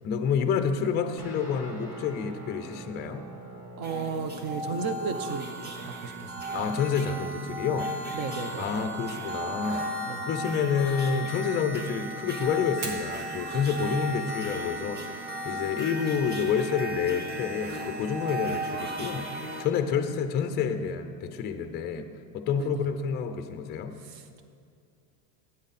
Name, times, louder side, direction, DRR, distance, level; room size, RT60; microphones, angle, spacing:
voice 1, 0.0-3.2 6.5-7.9 8.6-9.9 10.2-22.1 22.3-23.9, left 6 dB, 20° left, 8 dB, 0.4 m, -29 dB
Guitar, 1.2-10.3, right 1 dB, 5° right, 2.3 m, -46 dB
sound 1, 3.8-19.6, right 1 dB, 20° right, 1.0 m, -35 dB
voice 2, 3.8-5.7 6.0-6.4 8.1-8.6 10.1-10.2 22.5-22.8 24.0-24.4, right 5 dB, 45° right, 10 dB, 0.8 m, -34 dB
Fire, 12.7-20.7, right 3 dB, 85° right, 2.0 m, -48 dB
12.0 x 8.8 x 4.1 m, 2.4 s
supercardioid pair, 135°, 49 cm